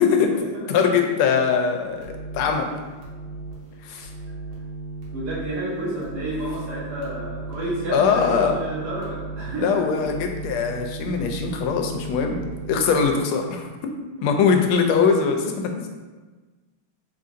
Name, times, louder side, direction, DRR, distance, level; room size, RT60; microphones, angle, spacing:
voice 1, 0.0-0.7 1.0-1.1 5.1-10.1 14.2-14.3, right 1 dB, 55° right, -8 dB, 1.7 m, -31 dB
voice 2, 0.7-2.7 3.8-4.1 7.9-8.5 9.6-12.4 12.6-13.7 14.2-15.9, left 6 dB, 90° left, 4 dB, 1.4 m, -21 dB
sound 1, 1.8-13.1, right 3 dB, 80° right, 1.8 m, -36 dB
4.0 x 2.5 x 3.7 m, 1.3 s
omnidirectional pair, 2.3 m